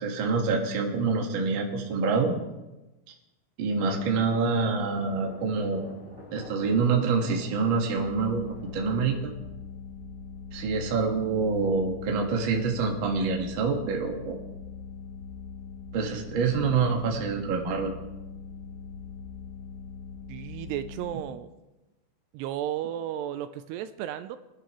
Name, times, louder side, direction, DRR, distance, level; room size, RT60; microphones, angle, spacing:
voice 1, 0.0-2.3 3.6-5.8 6.3-8.4 8.7-9.3 10.5-14.4 15.9-17.9, right 4 dB, 60° right, 1 dB, 1.3 m, -26 dB
sound 1, 3.8-9.1, left 1 dB, 10° right, 3.8 m, -47 dB
sound 2, 8.0-21.2, left 6 dB, 75° left, 1.9 m, -42 dB
voice 2, 20.3-21.5 22.3-24.4, right 11 dB, 80° right, 11 dB, 2.6 m, -33 dB
24.5 x 11.0 x 3.1 m, 1.0 s
omnidirectional pair, 4.9 m